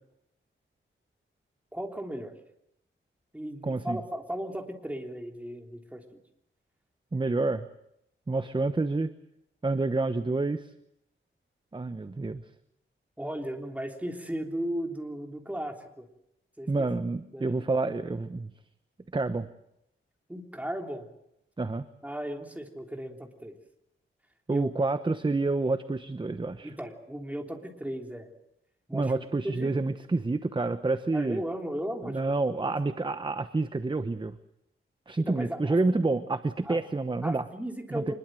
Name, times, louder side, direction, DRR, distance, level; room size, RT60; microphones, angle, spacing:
voice 1, 1.7-2.3 3.3-6.0 13.2-16.1 16.6-16.9 17.3-17.6 20.3-21.1 22.0-23.5 24.5-24.7 26.6-28.3 28.9-29.7 31.1-32.2 35.2-35.8 36.6-36.8 37.2-38.1, equal, 5° right, 4 dB, 3.5 m, -36 dB
voice 2, 3.6-4.0 7.1-7.7 8.3-9.1 9.6-10.7 11.7-12.4 16.7-18.5 19.1-19.5 21.6-21.9 24.5-26.7 28.9-31.4 32.0-34.4 35.1-37.4 37.9-38.1, right 3 dB, 20° right, 11 dB, 1.0 m, -28 dB
25.5 x 21.5 x 7.7 m, 0.78 s
wide cardioid pair, 130°, 21 cm